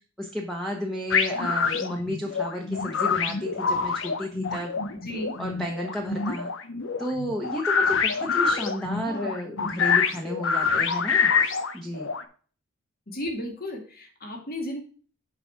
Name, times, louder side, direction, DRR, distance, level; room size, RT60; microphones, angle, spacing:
voice 1, 0.2-4.7 5.4-6.5 7.0-11.3 11.7-12.1, equal, ahead, 1 dB, 1.0 m, -32 dB
sound 1, 1.1-12.2, left 5 dB, 70° left, 0.7 m, -26 dB
voice 2, 5.0-5.4 9.0-9.4 13.1-14.8, left 1 dB, 50° left, 2 dB, 2.1 m, -34 dB
6.9 x 4.9 x 5.7 m, 0.41 s
head